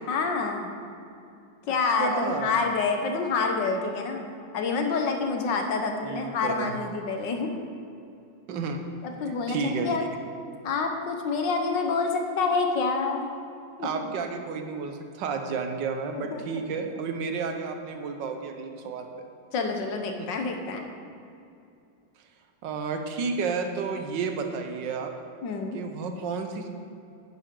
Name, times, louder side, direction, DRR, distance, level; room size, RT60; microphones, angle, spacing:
voice 1, 0.1-0.7 1.7-4.2 4.5-7.5 9.0-10.0 10.6-13.3 13.8-14.2 16.1-16.6 19.5-20.8 25.4-25.8, left 4 dB, 75° left, 4 dB, 1.6 m, -27 dB
voice 2, 2.0-2.6 6.0-6.8 8.5-8.8 9.5-10.1 13.8-19.3 22.6-25.1 25.7-26.7, right 5 dB, 75° right, 5 dB, 1.6 m, -31 dB
10.0 x 10.0 x 3.8 m, 2.6 s
omnidirectional pair, 2.0 m